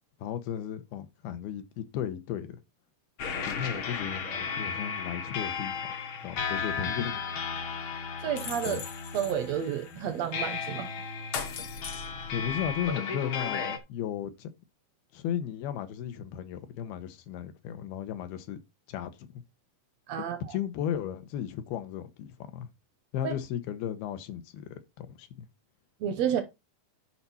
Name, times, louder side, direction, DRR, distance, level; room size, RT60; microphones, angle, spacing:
voice 1, 0.2-2.6 3.5-5.8 6.2-7.2 8.7-8.9 12.3-14.5 15.1-18.6 18.9-19.1 20.5-22.7 23.1-25.5, left 9 dB, 85° left, 3.0 m, -35 dB
sound 1, 3.2-13.8, left 6 dB, 65° left, 1.3 m, -34 dB
voice 2, 8.2-8.8 9.1-10.9 20.1-20.4 23.2-23.3 26.0-26.4, right 9 dB, 75° right, 1.5 m, -30 dB
11.0 x 5.5 x 4.2 m
omnidirectional pair, 4.3 m